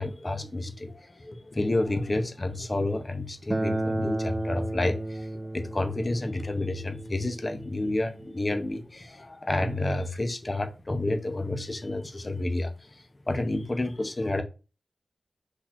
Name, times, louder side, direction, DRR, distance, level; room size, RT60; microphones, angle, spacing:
voice 1, 0.0-5.3 5.5-12.7 13.3-14.4, left 2 dB, 35° left, 0.8 m, -30 dB
Acoustic guitar, 3.5-8.7, right 1 dB, 20° right, 0.4 m, -33 dB
4.2 x 2.7 x 4.4 m
wide cardioid pair, 70°, 0 cm